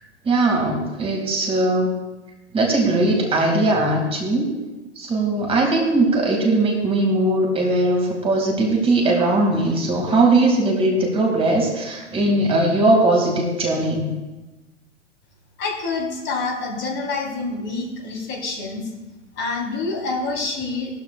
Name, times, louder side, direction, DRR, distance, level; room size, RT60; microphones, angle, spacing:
voice 1, 0.2-2.0 2.5-4.5 5.0-14.1, right 2 dB, 15° right, 1 dB, 2.4 m, -19 dB
voice 2, 15.6-18.9 19.3-20.9, left 3 dB, 30° left, -2 dB, 4.1 m, -27 dB
17.5 x 13.0 x 2.5 m, 1.1 s
figure-of-eight pair, 105°, 36 cm